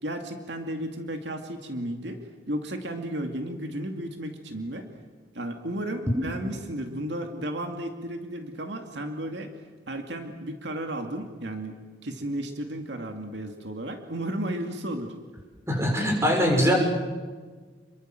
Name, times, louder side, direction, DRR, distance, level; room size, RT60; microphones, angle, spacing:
voice 1, 0.0-2.2 2.5-4.9 5.3-9.5 9.9-11.8 12.0-15.1, right 1 dB, 75° right, 5 dB, 2.4 m, -33 dB
voice 2, 15.7-16.7, equal, 15° right, 1 dB, 6.5 m, -22 dB
28.5 x 23.0 x 7.7 m, 1.4 s
head